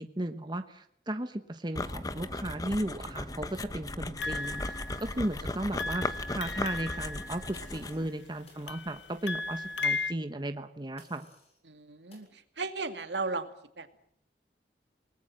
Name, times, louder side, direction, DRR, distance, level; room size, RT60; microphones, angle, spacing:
voice 1, 0.0-4.6 5.0-11.3, right 1 dB, 25° right, 7 dB, 1.1 m, -35 dB
sound 1, 1.7-8.1, left 2 dB, 20° left, 1.0 m, -37 dB
sound 2, 4.2-5.4 5.8-8.0 8.7-10.1, left 3 dB, 85° left, 1.0 m, -36 dB
sound 3, 7.5-8.1 8.5-8.7 11.0-11.6 12.1-12.3, left 2 dB, 35° left, 7.5 m, -59 dB
voice 2, 11.6-13.5 13.8-14.0, right 3 dB, 75° right, 8 dB, 2.3 m, -36 dB
29.0 x 19.5 x 7.6 m, 0.69 s
head